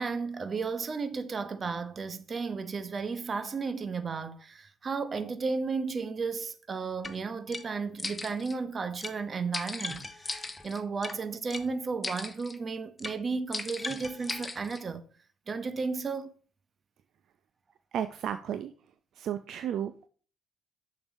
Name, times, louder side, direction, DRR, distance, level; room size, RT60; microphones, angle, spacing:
voice 1, 0.0-15.1 15.5-16.4, right 4 dB, 35° right, 1.0 m, -34 dB
sound 1, 7.0-7.1 7.5-7.6 8.0-8.6 9.0-9.1 9.5-11.1 11.5-11.6 12.0-12.6 13.0-13.2 13.5-14.8, left 3 dB, 20° left, 1.1 m, -37 dB
voice 2, 17.9-18.7 19.2-20.1, right 9 dB, 60° right, 0.5 m, -33 dB
7.1 x 5.3 x 5.3 m
hypercardioid pair, 55°, 0 cm